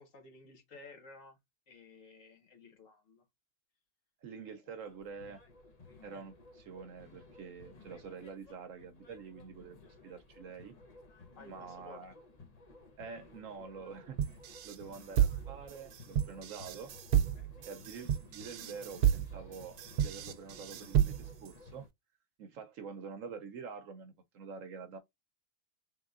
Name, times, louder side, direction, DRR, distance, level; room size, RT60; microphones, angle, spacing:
voice 1, 0.0-1.4 1.7-3.3 11.3-12.0, left 3 dB, 60° left, 1.6 m, -54 dB
voice 2, 4.2-5.4 6.0-10.7 11.5-12.1 13.0-14.2 14.6-16.9 17.7-21.9 22.4-25.0, right 5 dB, 65° right, 1.0 m, -47 dB
sound 1, 4.8-21.9, left 3 dB, 35° left, 0.8 m, -56 dB
sound 2, 14.2-21.5, right 10 dB, 90° right, 1.2 m, -31 dB
3.7 x 3.5 x 2.4 m
omnidirectional pair, 1.6 m